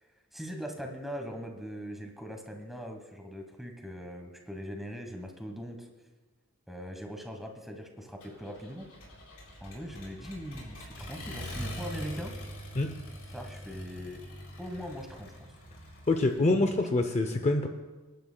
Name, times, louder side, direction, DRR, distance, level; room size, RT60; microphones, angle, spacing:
voice 1, 0.3-5.9 6.7-8.9 9.6-12.3 13.3-14.2 14.6-15.5 16.5-16.8, equal, ahead, 3 dB, 1.2 m, -41 dB
Accelerating revving vroom, 8.2-16.5, equal, 85° left, 4.1 m, -43 dB
voice 2, 16.1-17.7, left 2 dB, 30° left, 6 dB, 0.5 m, -25 dB
26.5 x 10.5 x 2.3 m, 1.3 s
head